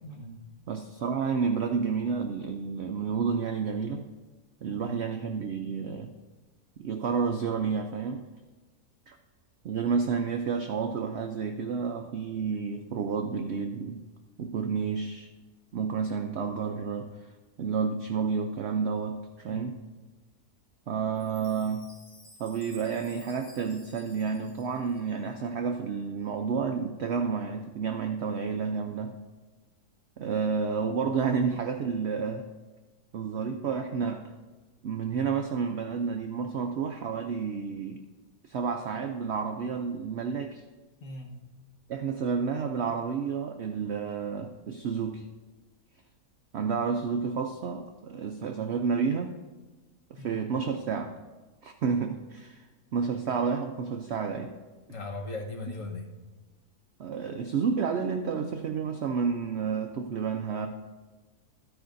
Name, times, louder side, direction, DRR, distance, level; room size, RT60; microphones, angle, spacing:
voice 1, 0.0-0.4 4.7-5.0 19.4-19.7 41.0-41.4 50.2-50.4 54.9-56.1, left 2 dB, 55° left, 0 dB, 1.5 m, -39 dB
voice 2, 0.7-4.0 4.6-6.1 6.8-8.3 9.1-9.2 9.6-14.0 14.4-15.3 15.7-17.1 17.6-19.8 20.9-21.9 22.4-29.1 30.2-32.5 33.1-34.3 34.8-38.0 38.4-40.6 41.9-45.2 46.5-49.4 50.1-51.1 51.6-52.6 52.9-54.5 57.0-60.7, right 6 dB, 70° right, 5 dB, 0.6 m, -30 dB
Chime, 21.1-25.4, left 1 dB, 85° left, 2.5 m, -54 dB
13.5 x 9.4 x 2.6 m, 1.2 s
omnidirectional pair, 1.6 m